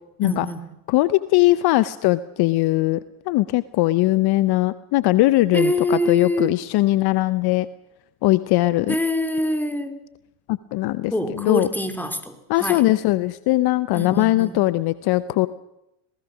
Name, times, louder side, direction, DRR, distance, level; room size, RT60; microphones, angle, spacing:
voice 1, 0.2-0.7 5.5-6.6 8.9-9.9 11.1-12.8 13.9-14.6, left 1 dB, 5° left, 7 dB, 2.8 m, -25 dB
voice 2, 0.9-3.0 3.3-7.7 8.2-9.0 10.5-11.7 12.5-15.5, left 18 dB, 50° left, 16 dB, 0.8 m, -20 dB
26.5 x 18.5 x 6.2 m, 0.86 s
hypercardioid pair, 75°, 49 cm